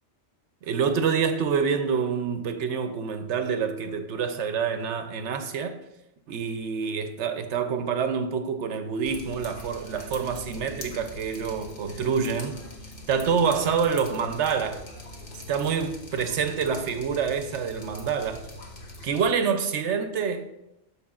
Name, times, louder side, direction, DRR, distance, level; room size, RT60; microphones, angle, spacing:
voice 1, 0.6-5.8 6.3-12.6 13.1-14.9 15.5-18.5 19.0-20.5, right 6 dB, 75° right, 1.0 m, -27 dB
Drip, 9.0-19.3, left 1 dB, 50° left, 1.3 m, -42 dB
14.0 x 4.8 x 2.4 m
omnidirectional pair, 1.2 m